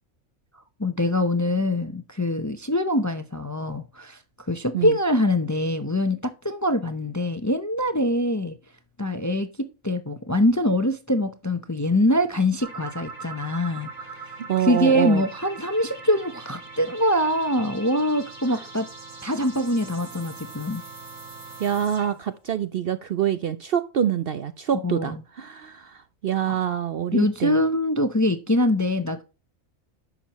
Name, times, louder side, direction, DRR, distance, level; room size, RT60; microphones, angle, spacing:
voice 1, 0.8-4.2 4.5-8.5 9.0-14.1 14.6-18.9 19.2-20.8 24.8-25.2 26.5-26.6 27.1-29.2, left 1 dB, 20° left, 0.6 m, -24 dB
sound 1, 12.6-22.3, right 3 dB, 90° right, 3.8 m, -41 dB
voice 2, 14.5-15.2 18.5-18.6 21.6-27.6, right 9 dB, 60° right, 0.7 m, -26 dB
11.0 x 7.2 x 3.0 m
omnidirectional pair, 1.4 m